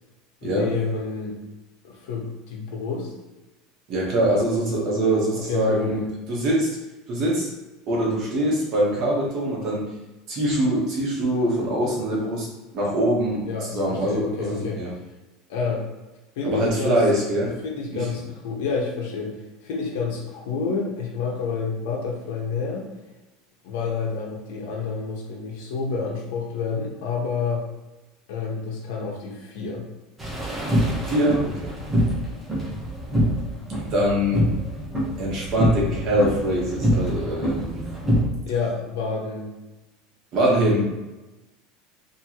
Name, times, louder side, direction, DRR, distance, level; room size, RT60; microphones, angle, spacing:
voice 1, 0.4-1.4 1.8-3.1 5.3-6.1 13.4-14.8 15.5-15.8 16.3-17.0 17.6-22.9 23.6-27.6 28.3-29.9 38.5-39.5, left 5 dB, 80° left, -1 dB, 1.2 m, -29 dB
voice 2, 3.9-6.0 6.3-6.7 7.1-7.5 7.9-9.9 10.3-12.5 12.7-14.9 16.4-17.5 17.9-18.0 31.1-31.7 33.9-34.5 35.2-37.8 40.3-40.8, right 1 dB, 35° right, -4 dB, 1.2 m, -23 dB
sound 1, 30.2-38.2, equal, 10° right, 1.0 m, -25 dB
4.5 x 3.0 x 3.0 m, 1.1 s
cardioid pair, 180°, 0 cm